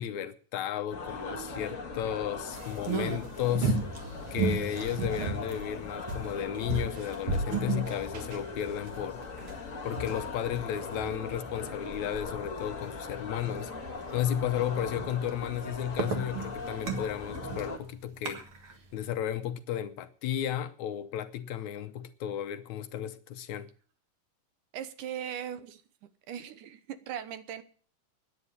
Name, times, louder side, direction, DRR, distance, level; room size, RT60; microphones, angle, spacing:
voice 1, 0.0-3.8 4.3-9.2 9.8-13.7 14.1-18.4 18.9-23.7, left 10 dB, 75° left, 2.0 m, -33 dB
sound 1, 0.9-17.8, left 3 dB, 30° left, 1.7 m, -40 dB
sound 2, 2.5-11.8 12.2-12.3 12.8-12.9 13.3-13.5 13.9-14.2 14.7-18.7 19.0-19.1, right 4 dB, 50° right, 2.3 m, -34 dB
voice 2, 24.7-25.8 26.3-27.6, right 9 dB, 80° right, 2.5 m, -39 dB
9.7 x 9.5 x 9.6 m
omnidirectional pair, 3.6 m